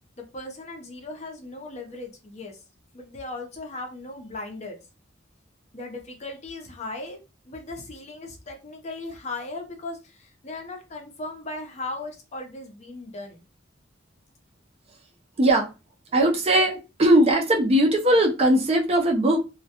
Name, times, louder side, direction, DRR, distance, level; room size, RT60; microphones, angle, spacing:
voice 1, 0.2-2.6 2.9-4.8 5.7-7.2 7.5-13.5, left 2 dB, 35° left, 0.6 m, -37 dB
voice 2, 15.4-15.7 16.1-19.4, right 1 dB, 35° right, 0.5 m, -19 dB
2.2 x 2.1 x 2.8 m
head